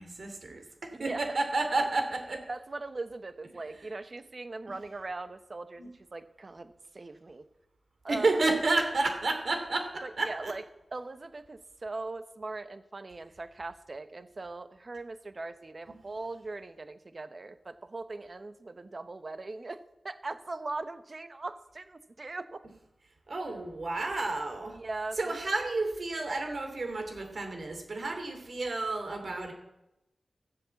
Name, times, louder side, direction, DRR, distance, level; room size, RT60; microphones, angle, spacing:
voice 1, 0.0-2.5 4.7-4.8 5.8-5.9 8.1-10.5 23.3-24.8 25.2-29.5, right 3 dB, 65° right, 5 dB, 2.7 m, -31 dB
voice 2, 0.9-1.4 1.7-1.9 2.5-7.4 8.0-8.3 10.0-10.6 10.9-19.8 20.0-22.6 24.7-25.3, right 3 dB, 45° right, 11 dB, 0.9 m, -40 dB
14.0 x 7.8 x 7.1 m, 0.92 s
cardioid pair, 55°, 0 cm